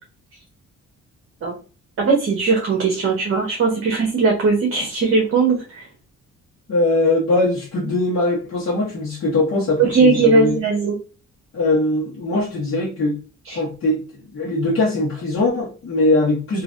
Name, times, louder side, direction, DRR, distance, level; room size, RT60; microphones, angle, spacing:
voice 1, 2.0-5.9 9.8-10.9 13.4-13.6, right 4 dB, 45° right, 0 dB, 1.0 m, -18 dB
voice 2, 6.7-10.6 11.5-13.2 13.5-14.0 14.3-16.6, left 2 dB, 45° left, -4 dB, 1.0 m, -21 dB
3.2 x 2.5 x 2.5 m, 0.36 s
cardioid pair, 90°, 30 cm